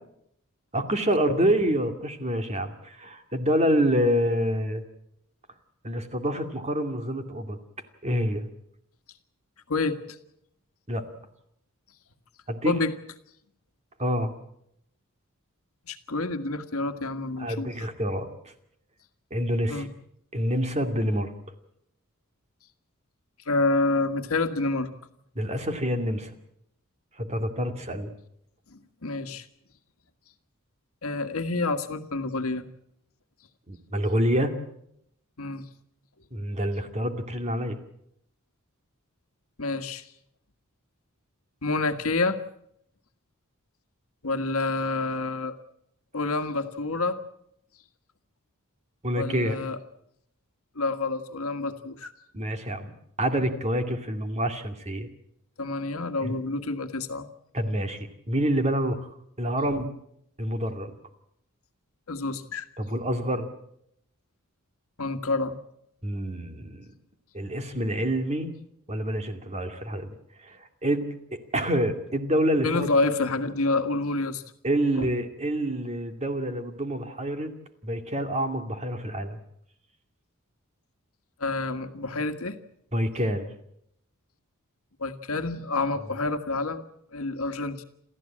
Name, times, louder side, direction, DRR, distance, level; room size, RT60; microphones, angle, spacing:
voice 1, 0.7-4.8 5.8-7.6 8.0-8.5 10.9-11.0 12.5-12.8 14.0-14.3 17.4-18.3 19.3-19.9 20.3-21.3 25.4-26.3 27.2-28.1 33.7-34.5 36.3-37.8 49.0-49.6 52.3-52.9 53.2-55.1 56.2-56.4 57.5-59.1 59.4-59.9 60.4-61.0 62.8-63.5 66.0-66.9 67.3-68.5 68.9-72.9 74.6-77.5 77.8-79.4 82.9-83.5, equal, 30° right, 6 dB, 2.3 m, -27 dB
voice 2, 9.7-10.2 12.6-12.9 15.9-17.7 19.7-19.9 23.4-24.9 28.7-29.4 31.0-32.6 35.4-35.6 39.6-40.1 41.6-42.4 44.2-45.6 46.1-47.2 49.2-49.8 50.7-52.1 55.6-57.3 59.6-59.7 62.1-62.6 65.0-65.6 72.6-74.4 75.0-75.1 81.4-82.6 85.0-86.8 87.1-87.8, left 3 dB, 80° left, 8 dB, 1.7 m, -28 dB
28.5 x 13.5 x 8.7 m, 0.75 s
head